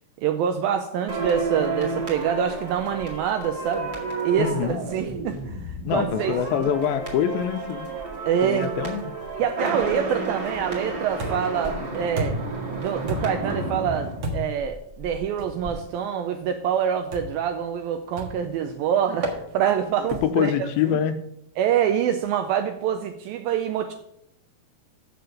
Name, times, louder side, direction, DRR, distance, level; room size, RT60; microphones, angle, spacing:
voice 1, 0.2-3.9 4.2-6.7 8.3-8.7 9.4-12.4 12.8-21.0 21.6-23.9, right 8 dB, 80° right, 7 dB, 2.2 m, -26 dB
sound 1, 1.1-15.2 15.5-15.7, right 3 dB, 35° right, 1.7 m, -32 dB
voice 2, 4.4-4.8 5.8-7.9 8.4-9.1 20.2-21.2, left 9 dB, 80° left, 8 dB, 2.3 m, -25 dB
sound 2, 11.2-11.6 12.2-12.6 13.1-13.5 14.2-14.7 15.4-15.6 17.1-17.5 18.2-18.5 19.2-19.4 20.1-20.4, right 1 dB, 55° right, 2.1 m, -31 dB
6.8 x 6.8 x 7.7 m, 0.76 s
omnidirectional pair, 4.7 m